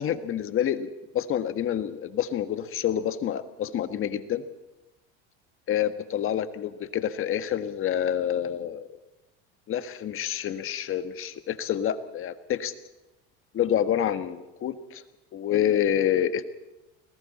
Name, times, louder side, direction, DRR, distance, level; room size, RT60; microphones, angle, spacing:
voice 1, 0.0-4.5 5.7-8.9 9.7-12.7 13.5-15.0 15.3-16.4, left 10 dB, 40° left, 10 dB, 1.6 m, -27 dB
29.5 x 20.5 x 4.3 m, 1.0 s
cardioid pair, 130°, 31 cm